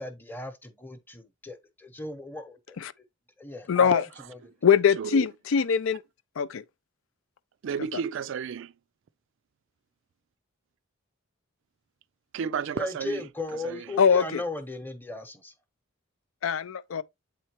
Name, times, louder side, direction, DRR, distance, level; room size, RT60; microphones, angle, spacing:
voice 1, 0.0-2.8 3.4-4.5 12.7-15.5, left 2 dB, 10° left, 0.9 m, -37 dB
voice 2, 3.7-4.0 4.6-6.0 6.4-6.6 14.0-14.4 16.4-17.0, left 7 dB, 75° left, 0.4 m, -22 dB
voice 3, 5.0-5.3 5.6-5.7 7.6-8.7 12.3-13.3 13.6-14.0, right 7 dB, 65° right, 0.3 m, -32 dB
8.0 x 4.3 x 2.9 m
head